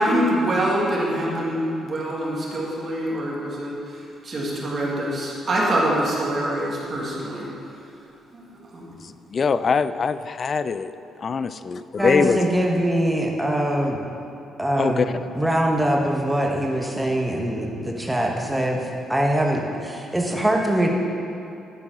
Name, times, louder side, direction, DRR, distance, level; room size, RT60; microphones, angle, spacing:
voice 1, 0.0-4.0 4.2-7.5 8.7-8.9, right 1 dB, 45° right, -4 dB, 1.9 m, -24 dB
voice 2, 9.0-10.9 11.2-12.4 14.8-15.6, left 5 dB, 45° left, 13 dB, 0.3 m, -23 dB
voice 3, 12.0-14.0 14.6-18.8 19.1-20.9, right 1 dB, 10° right, 0 dB, 1.2 m, -23 dB
11.0 x 3.9 x 6.2 m, 2.8 s
cardioid pair, 90°, 0 cm